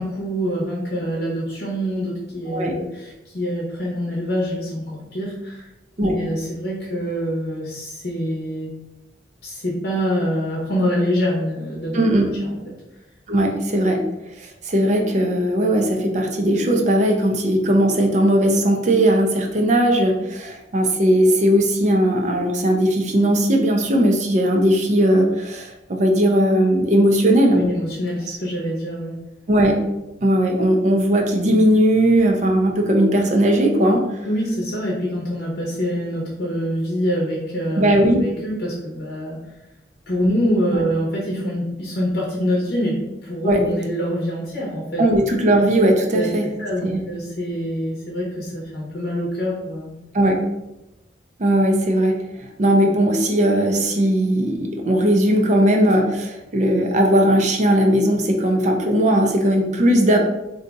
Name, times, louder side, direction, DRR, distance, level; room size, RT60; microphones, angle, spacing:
voice 1, 0.0-5.7 6.0-8.7 9.4-12.0 12.4-12.7 27.5-29.2 34.2-39.4 40.1-45.1 46.1-46.3 46.6-49.9, equal, 60° left, -4 dB, 0.7 m, -25 dB
voice 2, 2.5-2.8 6.0-6.2 11.9-12.3 13.3-14.0 14.4-27.6 29.5-29.8 30.2-34.1 37.8-38.2 40.7-40.8 43.5-43.6 45.0-46.5 46.8-47.0 50.1-50.4 51.4-52.2 52.6-60.2, right 1 dB, 40° right, 2 dB, 0.5 m, -18 dB
2.6 x 2.3 x 3.9 m, 0.93 s
head